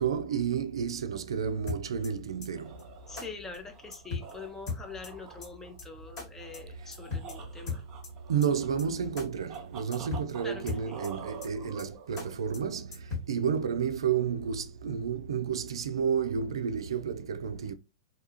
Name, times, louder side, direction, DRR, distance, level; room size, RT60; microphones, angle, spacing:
voice 1, 0.0-2.7 8.3-12.9 13.3-17.7, right 7 dB, 80° right, 0.3 m, -31 dB
sound 1, 1.7-2.1 2.4-2.5 2.8-2.9 3.2-3.3 3.5-3.6 3.9-4.3 4.7-5.1 5.4-5.5 5.8-5.9 6.2-6.3 6.5-6.6 6.9-7.3 7.7-8.1 8.4-8.5 8.8-8.9 9.2-9.3 9.5-9.6 9.9-10.3 10.7-11.1 11.4-11.5 11.8-11.9 12.2-12.3 12.5-12.6 12.9-13.3, left 4 dB, 50° left, 1.8 m, -36 dB
sound 2, 2.5-12.6, right 6 dB, 30° right, 0.7 m, -48 dB
voice 2, 3.1-7.8 10.4-11.1, left 4 dB, 15° left, 0.6 m, -44 dB
2.7 x 2.3 x 2.8 m
hypercardioid pair, 115°, 3 cm